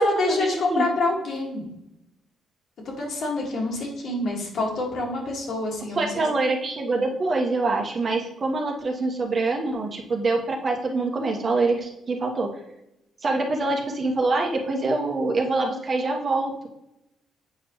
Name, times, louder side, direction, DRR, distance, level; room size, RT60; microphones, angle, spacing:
voice 1, 0.0-1.7 2.9-6.2, left 2 dB, 65° left, -1 dB, 2.1 m, -27 dB
voice 2, 5.9-12.5 13.2-16.7, right 3 dB, 40° right, 1 dB, 1.2 m, -25 dB
8.0 x 4.4 x 3.1 m, 0.87 s
cardioid pair, 90°, 0 cm